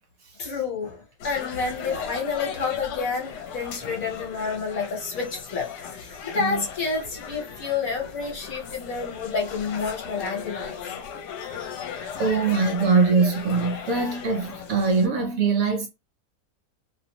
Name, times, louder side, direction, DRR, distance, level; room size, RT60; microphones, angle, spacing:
voice 1, 0.4-10.8, left 5 dB, 60° left, 1.3 m, -29 dB
sound 1, 1.2-15.1, left 7 dB, 80° left, 1.2 m, -37 dB
voice 2, 12.2-15.9, right 4 dB, 65° right, 1.0 m, -22 dB
2.8 x 2.0 x 2.8 m
omnidirectional pair, 1.8 m